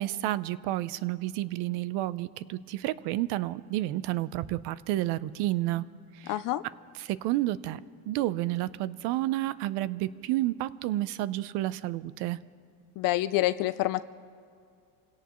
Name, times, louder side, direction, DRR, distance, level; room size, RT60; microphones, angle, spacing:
voice 1, 0.0-5.8 6.1-6.4 7.0-12.4, right 15 dB, 70° right, 17 dB, 0.7 m, -30 dB
voice 2, 6.3-6.6 13.0-14.0, left 16 dB, 55° left, 14 dB, 0.5 m, -27 dB
27.5 x 17.0 x 3.1 m, 2.2 s
cardioid pair, 140°, 41 cm